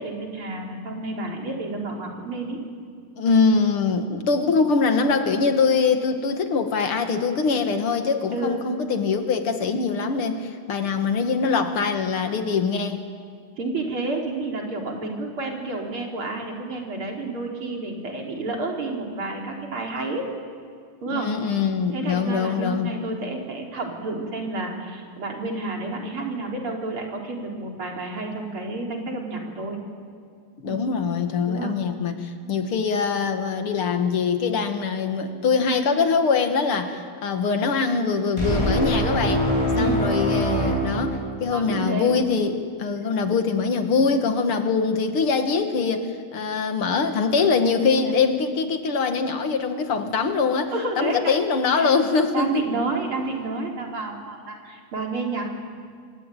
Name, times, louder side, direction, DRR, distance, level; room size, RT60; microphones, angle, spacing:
voice 1, 0.0-2.6 4.1-4.2 8.3-8.6 13.6-20.2 21.0-21.3 21.9-29.8 30.6-30.9 31.5-31.8 39.7-40.3 41.5-42.2 44.5-44.6 47.9-48.2 50.7-51.3 51.7-51.9 52.3-55.5, right 3 dB, 75° right, 0 dB, 4.6 m, -30 dB
voice 2, 3.2-13.0 21.1-22.9 30.6-39.5 39.8-52.7, left 5 dB, 80° left, 7 dB, 2.8 m, -23 dB
sound 1, 38.4-41.8, equal, 10° left, 4.1 m, -23 dB
26.5 x 22.5 x 9.2 m, 2.2 s
omnidirectional pair, 2.4 m